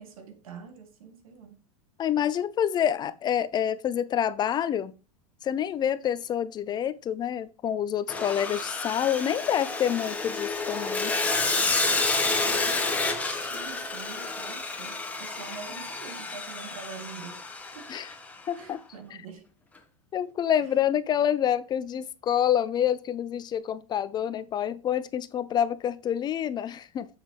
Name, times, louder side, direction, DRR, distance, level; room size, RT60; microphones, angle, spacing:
voice 1, 0.0-1.6 11.6-17.4 17.7-17.9 18.6-19.5 20.6-20.8, right 6 dB, 90° right, 1.8 m, -45 dB
voice 2, 2.0-4.9 5.4-11.1 17.9-18.1 18.5-18.8 20.1-27.1, left 9 dB, 25° left, 0.4 m, -27 dB
Sawing, 8.1-18.3, left 3 dB, 10° left, 1.1 m, -30 dB
7.4 x 6.0 x 3.1 m
supercardioid pair, 130°, 17 cm